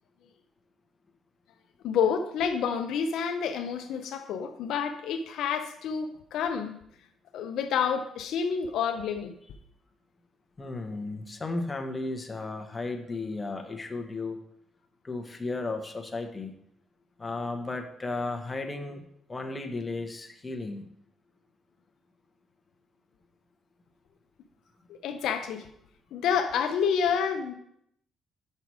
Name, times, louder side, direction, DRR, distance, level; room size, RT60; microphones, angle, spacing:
voice 1, 1.8-6.8 7.3-9.3 24.9-25.7 26.1-27.5, left 7 dB, 80° left, 7 dB, 0.5 m, -29 dB
voice 2, 10.6-14.4 15.0-16.5 17.2-19.0 19.3-20.8, left 3 dB, 25° left, 4 dB, 1.0 m, -34 dB
5.9 x 5.6 x 4.7 m, 0.73 s
cardioid pair, 90°, 0 cm